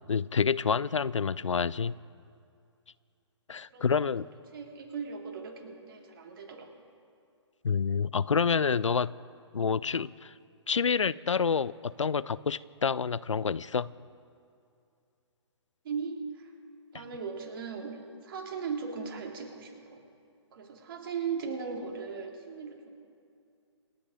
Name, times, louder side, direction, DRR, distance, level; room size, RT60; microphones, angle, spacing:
voice 1, 0.1-1.9 3.5-4.3 7.6-9.1 9.5-10.3 10.7-13.9 16.9-17.0, left 6 dB, 85° left, 20 dB, 0.4 m, -28 dB
voice 2, 3.7-4.1 4.5-6.7 15.8-16.5 16.9-18.0 18.2-20.0 20.5-22.9, right 5 dB, 45° right, 1 dB, 2.9 m, -38 dB
27.5 x 10.0 x 5.2 m, 2.5 s
figure-of-eight pair, 135°, 15 cm